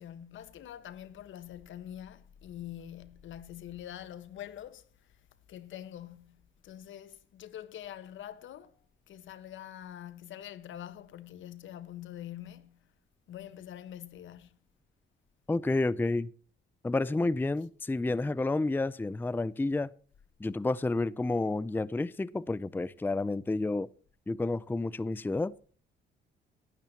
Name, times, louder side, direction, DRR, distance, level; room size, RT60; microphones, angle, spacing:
voice 1, 0.0-12.9 13.3-14.6, left 11 dB, 75° left, 1.4 m, -45 dB
voice 2, 15.5-16.3 16.8-19.9 20.4-23.9 24.3-25.5, left 2 dB, 10° left, 0.5 m, -30 dB
17.5 x 12.5 x 2.9 m
cardioid pair, 90°, 20 cm